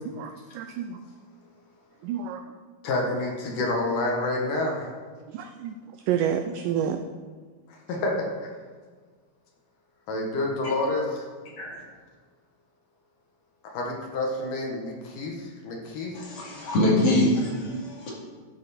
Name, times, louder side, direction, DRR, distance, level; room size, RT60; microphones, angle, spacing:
voice 1, 0.2-1.0 2.0-2.4 5.3-5.8 6.1-7.0, right 9 dB, 85° right, 6 dB, 1.9 m, -28 dB
voice 2, 2.8-4.9 7.7-8.3 10.1-11.2 13.6-16.2, left 2 dB, 65° left, 0 dB, 2.7 m, -28 dB
voice 3, 16.1-18.1, left 1 dB, 45° left, -5 dB, 3.1 m, -24 dB
13.5 x 8.0 x 4.2 m, 1.5 s
omnidirectional pair, 4.4 m